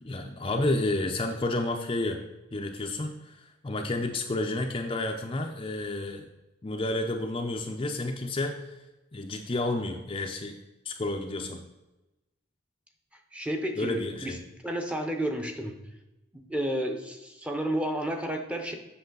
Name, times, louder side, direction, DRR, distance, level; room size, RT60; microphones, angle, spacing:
voice 1, 0.0-2.2 2.5-6.3 6.6-8.7 9.1-10.6 10.9-11.6 13.8-14.4, left 2 dB, 25° left, 3 dB, 0.5 m, -30 dB
voice 2, 13.3-14.4 14.6-15.8 16.3-18.7, right 1 dB, 5° right, 4 dB, 0.8 m, -31 dB
8.0 x 6.1 x 3.8 m, 1.0 s
head